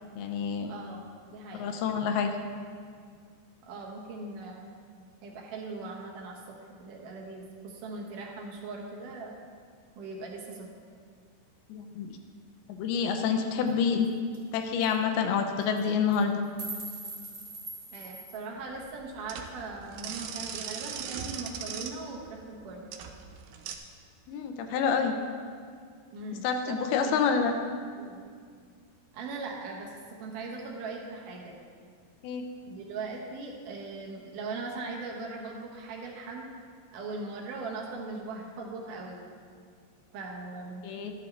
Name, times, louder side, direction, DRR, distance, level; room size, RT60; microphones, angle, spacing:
voice 1, 0.2-0.8 1.6-2.3 11.7-12.1 12.7-14.1 14.5-16.4 24.3-25.1 26.4-27.5 32.2-32.5 40.8-41.1, left 6 dB, 80° left, 5 dB, 2.3 m, -27 dB
voice 2, 0.7-1.7 3.7-4.7 5.2-9.4 10.0-10.7 17.9-22.9 26.1-27.5 27.9-28.3 29.1-31.6 32.7-36.5 36.9-39.2 40.1-40.9, right 3 dB, 65° right, -1 dB, 2.4 m, -40 dB
sound 1, 13.7-13.8 14.0-14.1 14.3-14.5 14.8-14.9 15.6-15.8 16.1-18.4, right 3 dB, 25° right, 1.6 m, -41 dB
sound 2, 18.6-23.8, right 8 dB, 90° right, 2.1 m, -39 dB
13.0 x 11.0 x 3.3 m, 2.1 s
omnidirectional pair, 5.0 m